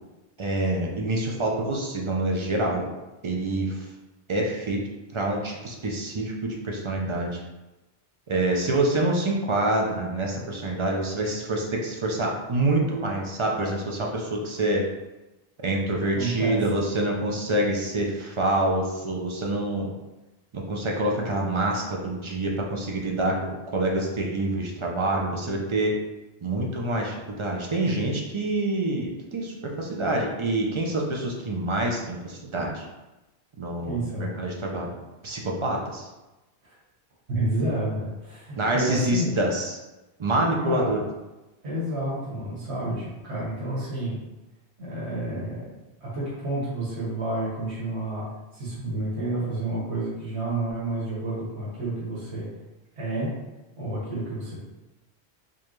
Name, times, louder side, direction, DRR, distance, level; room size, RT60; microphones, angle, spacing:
voice 1, 0.4-2.9 3.2-3.8 4.3-4.8 5.1-7.4 8.3-14.9 15.6-19.9 20.5-25.9 26.4-32.8 33.6-34.9 35.2-36.1 38.5-39.8 40.2-41.0, right 1 dB, 50° right, -1 dB, 0.3 m, -26 dB
voice 2, 16.1-16.6 33.9-34.4 36.6-36.8 37.3-39.4 40.7-40.9 41.6-44.2 44.8-45.7 46.0-48.3 48.5-52.5 53.0-53.3 53.8-54.6, right 2 dB, 85° right, -7 dB, 1.6 m, -30 dB
4.7 x 2.3 x 3.0 m, 1.1 s
omnidirectional pair, 1.1 m